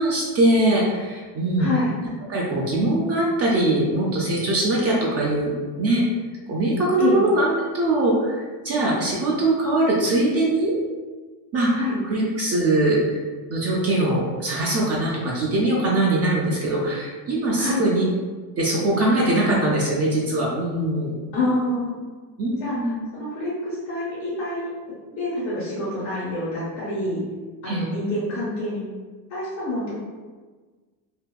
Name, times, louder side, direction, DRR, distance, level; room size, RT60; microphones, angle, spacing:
voice 1, 0.0-1.7 2.3-5.5 5.8-6.0 6.5-10.7 11.5-13.2 13.5-18.1 18.6-21.2 22.4-23.0 27.7-27.8, right 1 dB, 35° right, -4 dB, 0.4 m, -22 dB
voice 2, 1.6-1.9 7.0-7.2 11.7-12.0 17.6-17.8 21.3-22.0 22.6-24.7 25.2-27.2 27.6-28.8 29.3-30.0, left 2 dB, 85° left, -8 dB, 1.2 m, -27 dB
2.6 x 2.1 x 2.2 m, 1.4 s
supercardioid pair, 105°, 44 cm